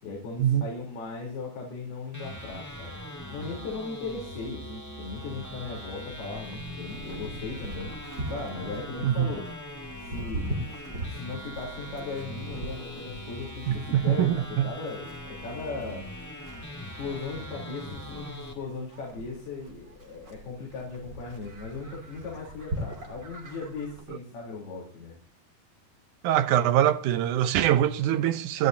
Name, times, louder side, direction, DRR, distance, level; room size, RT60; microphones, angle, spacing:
voice 1, 0.0-3.0 3.3-7.9 8.3-9.5 10.0-10.5 11.1-16.6 17.0-25.2, left 3 dB, 85° left, 5.5 m, -38 dB
sound 1, 2.1-18.5, left 1 dB, 10° left, 1.2 m, -41 dB
Livestock farm animals working animals, 6.3-24.0, right 1 dB, 30° right, 3.0 m, -41 dB
voice 2, 13.7-14.7 26.2-28.7, right 11 dB, 75° right, 1.9 m, -23 dB
29.0 x 11.5 x 2.8 m
omnidirectional pair, 4.4 m